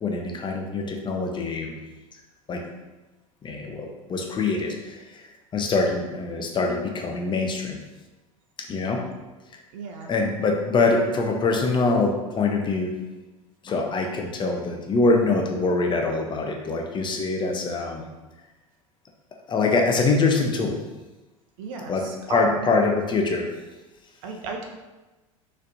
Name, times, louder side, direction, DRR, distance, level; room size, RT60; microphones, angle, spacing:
voice 1, 0.0-1.8 2.5-2.6 3.4-7.8 8.7-9.0 10.1-12.9 13.6-18.1 19.5-20.8 21.9-23.5, left 3 dB, 25° left, 2 dB, 0.6 m, -24 dB
voice 2, 9.7-10.1 21.6-22.8 24.2-24.6, right 4 dB, 70° right, 2 dB, 0.7 m, -34 dB
4.1 x 3.2 x 2.6 m, 1.1 s
hypercardioid pair, 85°, 18 cm